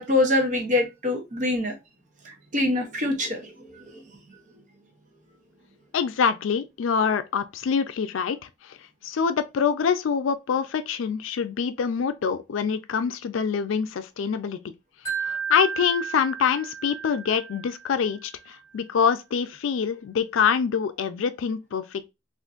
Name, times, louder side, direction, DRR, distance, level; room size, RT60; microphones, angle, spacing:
voice 1, 0.0-1.7 2.2-4.0, left 2 dB, 40° right, 0.7 m, -25 dB
voice 2, 5.9-8.8 9.0-14.6 15.2-22.1, left 6 dB, 85° left, 0.4 m, -25 dB
Wind chime, 15.1-18.2, right 7 dB, 15° left, 0.7 m, -33 dB
3.6 x 2.5 x 2.4 m
head